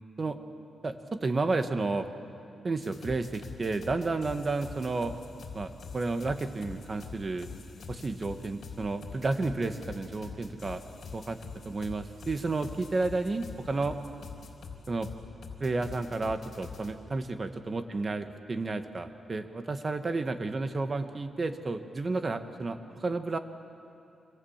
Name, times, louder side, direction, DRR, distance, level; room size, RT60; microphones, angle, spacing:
voice 1, 0.8-2.1 2.6-5.1 5.5-7.6 7.9-10.8 11.1-11.4 11.6-13.9 14.9-15.1 15.6-23.4, right 3 dB, 35° right, 8 dB, 1.5 m, -31 dB
sound 1, 2.8-16.9, left 5 dB, 65° left, 3.6 m, -45 dB
26.5 x 26.0 x 7.3 m, 2.8 s
cardioid pair, 105°, 0 cm